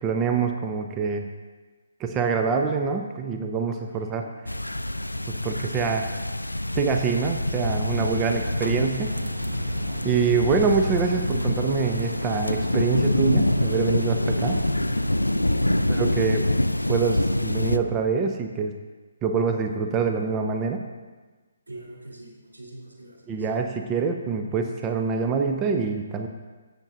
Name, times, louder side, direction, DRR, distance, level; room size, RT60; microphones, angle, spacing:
voice 1, 0.0-1.3 2.0-4.2 5.4-6.1 6.8-9.1 10.0-14.6 15.9-16.4 16.9-18.7 19.2-20.8 23.3-26.3, right 5 dB, 20° right, 5 dB, 0.5 m, -25 dB
voice 2, 3.9-4.3 21.7-23.5, right 1 dB, 70° right, -4 dB, 3.0 m, -45 dB
sound 1, 4.5-17.8, left 1 dB, 85° left, 0.4 m, -25 dB
sound 2, 7.7-15.1, right 2 dB, 45° right, 1.2 m, -39 dB
15.5 x 6.6 x 2.6 m, 1.3 s
figure-of-eight pair, 135°, 0 cm